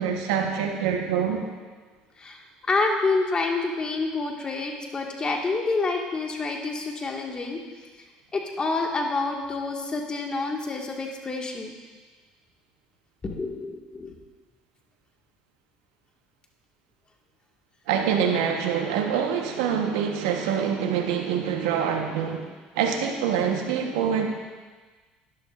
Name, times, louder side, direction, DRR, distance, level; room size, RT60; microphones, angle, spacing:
voice 1, 0.0-1.4 17.9-22.5 22.7-24.3, right 7 dB, 85° right, 3 dB, 1.0 m, -25 dB
voice 2, 2.7-7.6 8.3-11.7 13.2-14.1, left 3 dB, 30° left, 1 dB, 1.7 m, -28 dB
12.0 x 11.0 x 2.5 m, 1.4 s
supercardioid pair, 80°, 3 cm